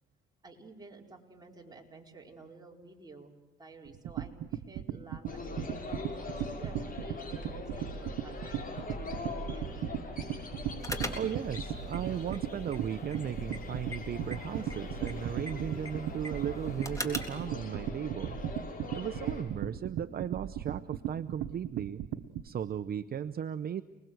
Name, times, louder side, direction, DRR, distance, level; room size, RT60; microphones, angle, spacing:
voice 1, 0.4-9.8, right 3 dB, 20° right, 0 dB, 4.5 m, -52 dB
sound 1, 3.8-22.5, right 11 dB, 90° right, 1.1 m, -37 dB
sound 2, 5.3-19.4, left 2 dB, 45° left, 7.0 m, -41 dB
sound 3, 10.8-17.5, left 1 dB, 15° left, 3.7 m, -43 dB
voice 2, 11.1-18.4 18.9-22.0 22.4-23.8, right 8 dB, 50° right, 12 dB, 0.8 m, -36 dB
29.5 x 21.0 x 8.0 m, 1.1 s
cardioid pair, 90°, 20 cm